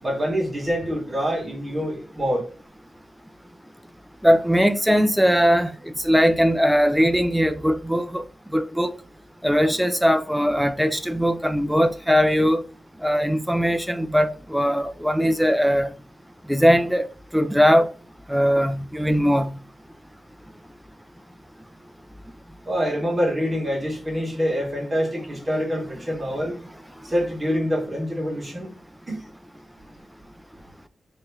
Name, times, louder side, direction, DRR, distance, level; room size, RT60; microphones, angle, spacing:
voice 1, 0.0-2.5 22.6-26.6 27.0-28.7 29.1-29.3, equal, 25° right, 1.6 m, -25 dB
voice 2, 4.2-8.2 8.5-8.9 9.4-12.6 13.0-15.9 16.5-17.9 18.3-19.5, equal, ahead, 0.3 m, -20 dB
3.4 x 3.1 x 2.7 m
wide cardioid pair, 125°, 0 cm